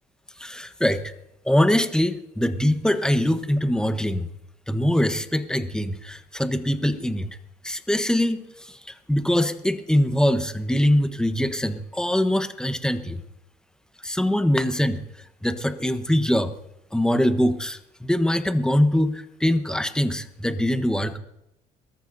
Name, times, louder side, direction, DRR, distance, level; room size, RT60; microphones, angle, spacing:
voice 1, 0.4-1.1 1.4-4.3 4.7-7.3 7.6-13.2 14.0-15.0 15.4-16.5 16.9-21.2, left 1 dB, 5° left, 10 dB, 1.2 m, -23 dB
22.0 x 14.0 x 2.7 m, 0.85 s
supercardioid pair, 80°, 17 cm